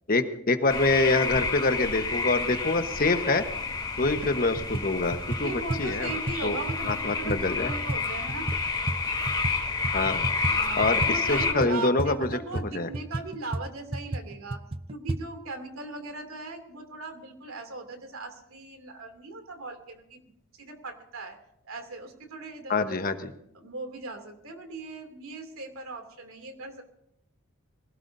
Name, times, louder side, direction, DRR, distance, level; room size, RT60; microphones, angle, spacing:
voice 1, 0.1-3.4 4.0-6.1 6.4-6.6 6.8-7.7 9.9-10.2 10.8-12.3 12.7-12.9 22.7-23.3, left 3 dB, 45° left, 8 dB, 1.2 m, -25 dB
sound 1, 0.7-11.5, left 4 dB, 20° left, 2.6 m, -30 dB
sound 2, 3.4-3.5 4.0-4.3 4.6-9.6 9.8-15.2, right 2 dB, 25° right, 0.5 m, -33 dB
voice 2, 5.4-8.5 10.4-14.6 14.9-20.3 20.6-21.4 21.6-23.0 23.5-26.8, right 3 dB, 85° right, 5 dB, 2.8 m, -38 dB
23.5 x 17.0 x 2.7 m, 0.74 s
head